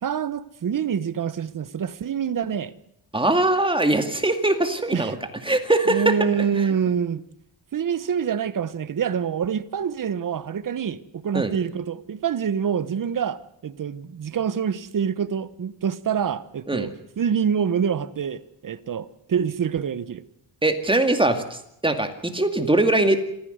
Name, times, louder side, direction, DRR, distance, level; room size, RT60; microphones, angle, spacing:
voice 1, 0.0-2.7 4.9-5.1 5.9-7.2 7.7-20.2, right 7 dB, 45° right, 1.2 m, -26 dB
voice 2, 3.1-5.1 5.5-6.1 11.3-11.5 16.7-16.9 20.6-23.2, right 2 dB, 10° right, 2.2 m, -21 dB
27.0 x 15.0 x 8.0 m
wide cardioid pair, 135°, 44 cm